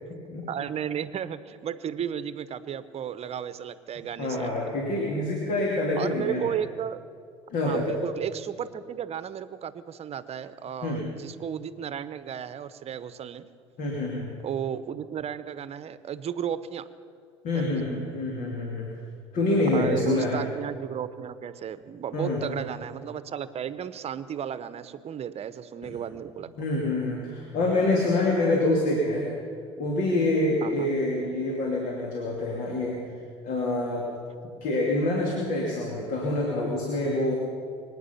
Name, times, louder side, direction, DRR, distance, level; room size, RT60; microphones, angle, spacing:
voice 1, 0.5-4.5 6.0-7.0 7.6-13.5 14.4-16.9 17.5-17.8 19.7-26.5 30.6-30.9, right 9 dB, 45° right, 14 dB, 0.9 m, -34 dB
voice 2, 4.2-6.4 7.5-8.0 10.8-11.1 13.8-14.3 17.4-18.9 19.3-20.4 22.1-22.6 25.8-25.9 26.6-29.3 29.8-33.0 33.4-34.1 34.6-37.4, left 2 dB, 60° left, -2 dB, 2.8 m, -26 dB
25.0 x 9.6 x 5.7 m, 2.3 s
hypercardioid pair, 65°, 15 cm